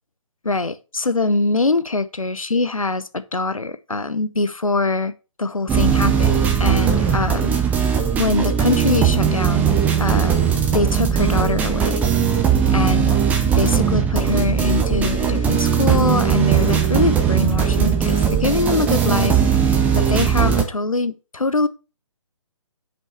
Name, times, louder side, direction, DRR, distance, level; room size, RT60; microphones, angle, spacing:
voice 1, 0.4-5.1 5.4-7.5 8.2-12.0 12.7-13.2 13.6-21.7, left 3 dB, 90° left, 0.8 m, -23 dB
sound 1, 5.7-20.6, right 8 dB, 10° right, 0.7 m, -18 dB
6.0 x 5.4 x 4.9 m
figure-of-eight pair, 135°, 17 cm